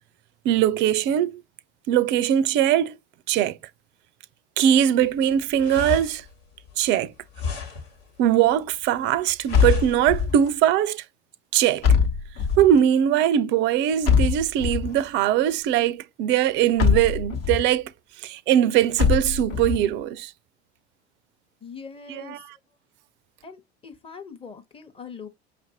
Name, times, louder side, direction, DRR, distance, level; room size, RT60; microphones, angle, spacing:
voice 1, 0.4-1.4 1.9-3.0 3.3-3.6 4.6-6.2 6.8-7.1 8.2-11.0 11.5-11.9 12.6-17.9 18.2-20.3 22.1-22.5, right 10 dB, 35° right, 0.4 m, -21 dB
sound 1, 5.0-10.5, left 6 dB, 65° left, 1.4 m, -35 dB
sound 2, 9.5-10.5 11.8-12.8 14.0-15.0 16.8-17.6 19.0-19.8, left 6 dB, 45° left, 1.0 m, -22 dB
voice 2, 21.6-22.4 23.4-25.3, left 5 dB, 15° left, 0.8 m, -42 dB
5.6 x 2.5 x 2.7 m
figure-of-eight pair, 70°, 34 cm